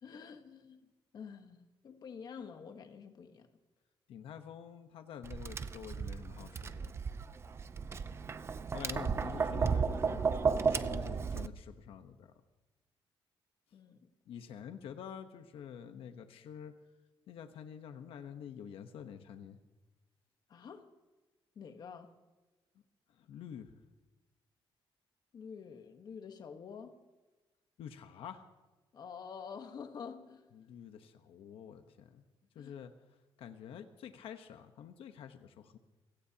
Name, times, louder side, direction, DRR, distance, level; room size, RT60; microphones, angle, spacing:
voice 1, 0.0-0.8 1.1-3.5 13.7-14.1 20.5-20.9 21.5-22.1 25.3-26.9 28.9-30.5 32.5-32.8, left 6 dB, 45° left, 7 dB, 1.3 m, -48 dB
voice 2, 4.1-6.9 8.7-12.3 14.3-16.7 17.3-19.6 23.1-23.8 27.8-28.5 30.5-32.2 32.5-32.9 33.4-35.8, left 8 dB, 85° left, 7 dB, 1.1 m, -48 dB
Tap, 5.2-11.5, right 5 dB, 30° right, 0.5 m, -34 dB
27.5 x 17.0 x 2.9 m, 1.2 s
cardioid pair, 160°, 9 cm